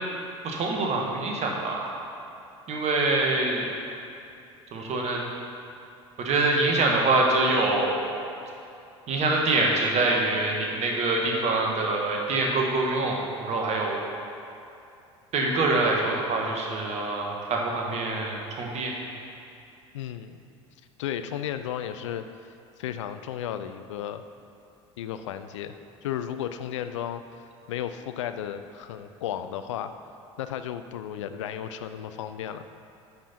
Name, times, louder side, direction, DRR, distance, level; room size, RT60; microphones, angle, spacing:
voice 1, 0.4-2.0 2.7-3.7 4.7-5.2 6.2-8.0 9.1-14.0 15.3-18.9, right 2 dB, 45° right, 0 dB, 1.6 m, -25 dB
voice 2, 19.9-20.4 21.0-22.2 22.8-24.2 25.0-25.8 26.0-27.2 27.7-29.9 30.4-32.8, left 10 dB, 75° left, 10 dB, 0.4 m, -34 dB
9.5 x 5.4 x 4.4 m, 2.7 s
figure-of-eight pair, 65°, 16 cm